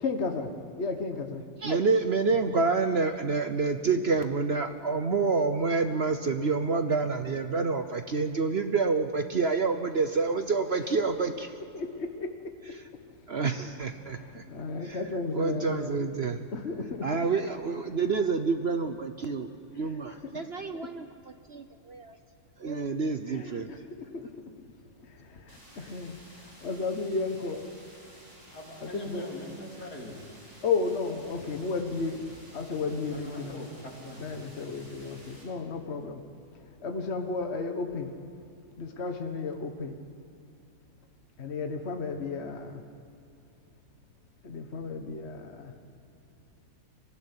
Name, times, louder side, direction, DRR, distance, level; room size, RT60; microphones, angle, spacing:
voice 1, 0.0-1.4 2.4-2.5 11.7-13.2 14.0-16.0 16.5-17.1 19.7-20.4 20.7-20.9 23.3-24.3 25.0-27.6 28.8-29.3 30.6-32.2 32.5-33.6 34.2-36.2 36.5-38.1 38.8-40.0 41.4-42.8 44.4-45.7, left 4 dB, 45° left, 5 dB, 1.6 m, -34 dB
voice 2, 1.6-11.5 13.3-14.4 14.8-15.0 15.3-16.4 17.0-21.1 21.5-22.2 22.6-23.7, right 4 dB, 45° right, 8 dB, 1.0 m, -28 dB
sound 1, 25.5-35.4, equal, 65° right, 6.2 m, -53 dB
voice 3, 28.5-30.2 33.1-34.2 34.8-34.9, equal, 75° left, -1 dB, 4.1 m, -42 dB
24.0 x 15.5 x 10.0 m, 2.7 s
omnidirectional pair, 1.7 m